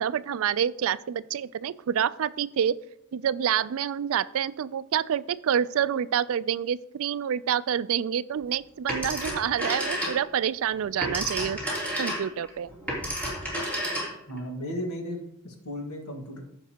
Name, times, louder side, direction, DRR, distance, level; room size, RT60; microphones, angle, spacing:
voice 1, 0.0-2.7 3.1-11.6 12.0-12.7, right 9 dB, 65° right, 16 dB, 0.3 m, -27 dB
Telephone, 8.9-10.4 10.8-14.4, equal, 5° left, 3.2 m, -31 dB
voice 2, 14.3-16.4, equal, 75° left, 1 dB, 1.7 m, -35 dB
15.0 x 5.4 x 2.9 m, 0.79 s
head